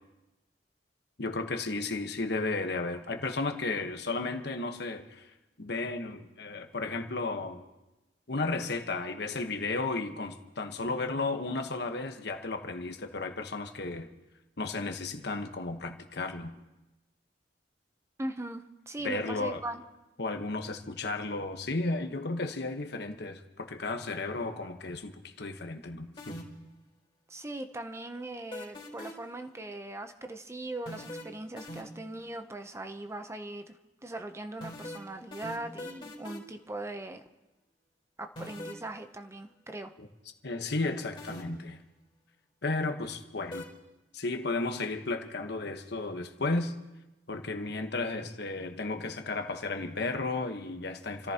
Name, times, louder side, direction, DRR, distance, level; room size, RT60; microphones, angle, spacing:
voice 1, 1.2-5.3 5.6-7.6 8.3-14.1 14.6-16.5 19.0-19.6 20.2-26.4 40.0-40.1 40.4-41.8 42.6-43.7 44.1-46.7 47.3-51.3, left 3 dB, 65° left, 6 dB, 1.2 m, -34 dB
voice 2, 18.2-19.8 27.3-33.7 34.0-37.2 38.2-39.9, right 2 dB, 15° right, 6 dB, 0.7 m, -40 dB
sound 1, 26.2-26.7 28.5-29.3 30.9-32.1 34.6-36.6 38.4-38.9 41.2-41.7 43.5-43.6, left 1 dB, 30° left, 3.8 m, -42 dB
29.5 x 14.5 x 2.9 m, 1.0 s
head